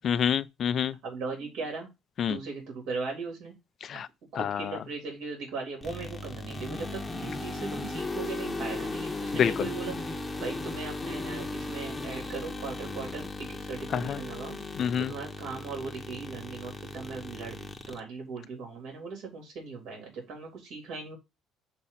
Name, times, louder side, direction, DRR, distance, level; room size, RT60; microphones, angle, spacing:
voice 1, 0.0-1.0 2.2-2.4 3.8-4.1 4.3-4.8 9.3-9.7 13.9-14.2 14.8-15.1, left 8 dB, 50° left, 0.5 m, -27 dB
voice 2, 1.0-1.9 2.2-3.5 4.3-14.6 15.0-21.2, right 4 dB, 70° right, 3.4 m, -38 dB
sound 1, 5.8-18.0, left 2 dB, 15° left, 1.0 m, -37 dB
6.8 x 3.0 x 5.7 m
cardioid pair, 115°, 0 cm